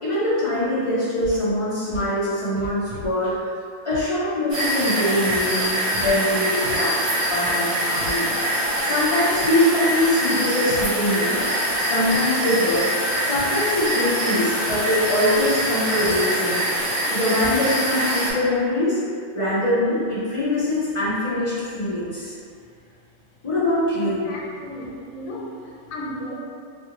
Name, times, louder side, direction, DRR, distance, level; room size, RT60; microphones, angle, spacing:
voice 1, 0.0-3.5 3.8-7.0 7.3-12.9 13.3-16.6 17.1-19.0 19.3-22.4 23.4-24.3, left 1 dB, 45° left, -10 dB, 0.4 m, -23 dB
Scratching (performance technique), 1.2-1.4 1.9-2.1 2.6-3.4 3.9-4.0 4.6-4.7 5.3-6.1 6.6-6.7 7.3-7.5 8.0-8.1 8.6-9.5 10.0-10.1 10.7-10.9 11.3-12.2 12.7-12.8 13.4-13.5 13.8-14.1 14.7-14.8 15.3-15.5 16.0-16.2 16.7-16.9 17.4-17.6, right 2 dB, 80° right, 1.0 m, -38 dB
sound 1, 4.5-18.3, equal, 60° right, 1.1 m, -24 dB
voice 2, 24.2-26.4, equal, 85° left, -3 dB, 1.0 m, -34 dB
2.5 x 2.5 x 2.9 m, 2.3 s
omnidirectional pair, 1.4 m